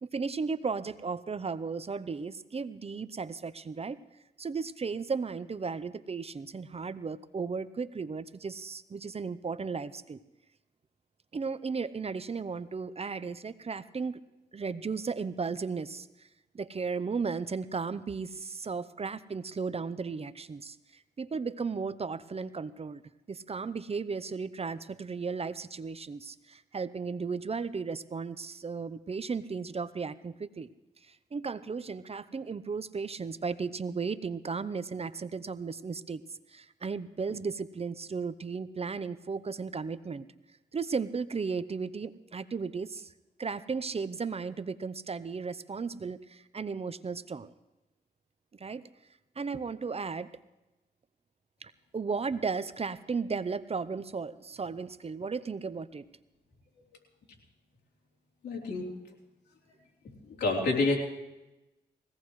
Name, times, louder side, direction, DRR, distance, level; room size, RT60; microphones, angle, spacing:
voice 1, 0.0-4.0 4.4-10.2 11.3-14.2 14.5-16.3 16.5-23.0 23.3-30.7 31.0-36.2 36.5-40.2 40.7-43.1 43.4-47.5 48.5-48.8 49.4-50.3 51.6-56.1, right 5 dB, 35° right, 15 dB, 0.7 m, -35 dB
voice 2, 58.4-58.9 60.4-61.0, left 3 dB, 75° left, -2 dB, 3.4 m, -27 dB
21.0 x 17.0 x 3.2 m, 1.0 s
cardioid pair, 60°, 17 cm